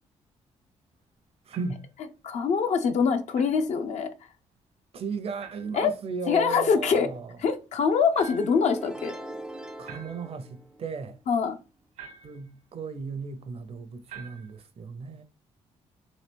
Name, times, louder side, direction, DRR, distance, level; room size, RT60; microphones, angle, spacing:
voice 1, 1.5-1.9 4.9-7.3 9.8-11.2 12.2-15.2, right 4 dB, 50° right, 0.6 m, -35 dB
sound 1, 1.5-1.9 3.3-3.6 5.4-5.8 8.1-8.7 9.9-10.5 12.0-12.5 14.1-14.6, right 6 dB, 80° right, 1.0 m, -46 dB
voice 2, 2.2-4.1 5.7-5.9 6.3-7.1 7.4-9.2 11.3-11.6, left 6 dB, 65° left, 0.6 m, -24 dB
sound 2, 8.4-11.2, right 1 dB, 5° right, 0.4 m, -41 dB
3.1 x 2.5 x 3.4 m
supercardioid pair, 65°, 13 cm